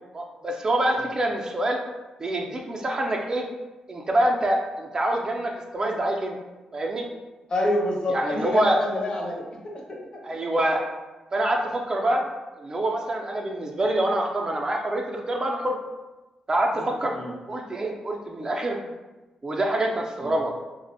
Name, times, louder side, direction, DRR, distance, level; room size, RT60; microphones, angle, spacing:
voice 1, 0.1-1.8 2.2-3.4 3.9-6.4 6.7-7.1 8.1-8.8 10.2-10.8 11.3-12.2 12.6-15.8 16.5-17.1 17.5-18.8 19.4-20.5, right 1 dB, 35° right, 0 dB, 0.3 m, -25 dB
voice 2, 7.5-10.0 16.7-17.3 20.2-20.4, left 1 dB, 40° left, -1 dB, 0.6 m, -28 dB
2.4 x 2.0 x 2.5 m, 1.1 s
cardioid pair, 85°, 2 cm